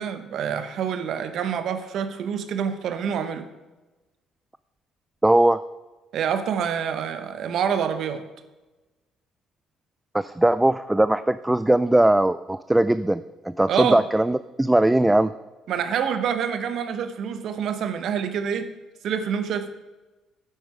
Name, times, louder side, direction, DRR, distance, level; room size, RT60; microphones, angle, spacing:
voice 1, 0.0-3.5 6.1-8.2 13.7-14.0 15.7-18.7 19.0-19.7, right 7 dB, 65° right, 10 dB, 0.9 m, -27 dB
voice 2, 5.2-5.6 10.1-15.3, right 1 dB, 10° right, 14 dB, 0.3 m, -20 dB
9.2 x 8.0 x 4.9 m, 1.1 s
supercardioid pair, 70°, 0 cm